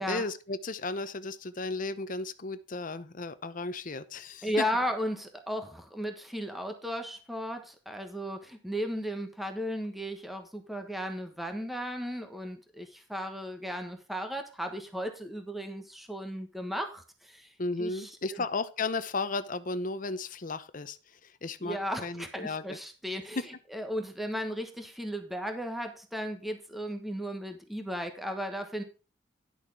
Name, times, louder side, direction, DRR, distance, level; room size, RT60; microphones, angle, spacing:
voice 1, 0.0-4.6 17.6-21.0 21.2-22.8 23.4-23.5, left 3 dB, 45° left, 11 dB, 0.8 m, -34 dB
voice 2, 4.4-17.5 17.8-18.5 21.6-28.8, equal, ahead, 5 dB, 1.2 m, -35 dB
11.0 x 6.4 x 4.8 m, 0.33 s
head